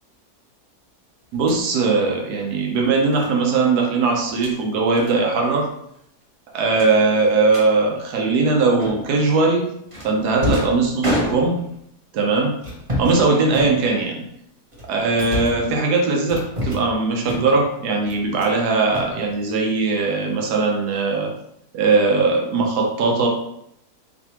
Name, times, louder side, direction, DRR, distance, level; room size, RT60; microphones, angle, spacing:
sound 1, 1.3-1.6 3.1-3.3 4.2-4.6 5.0-5.2 5.4-5.7 5.9-6.0 6.7-7.7 8.8-9.2 9.9-11.8 12.6-13.2 13.5-14.2 14.7-15.7 16.3-16.9 17.2-17.7 18.1-18.6 18.9-19.7, left 1 dB, 25° right, 0.8 m, -28 dB
voice 1, 1.3-5.7 6.5-9.7 10.0-11.6 12.1-12.6 13.0-14.2 14.8-21.3 21.7-23.3, right 3 dB, 75° right, 0 dB, 1.3 m, -20 dB
4.3 x 3.2 x 2.9 m, 0.74 s
omnidirectional pair, 1.7 m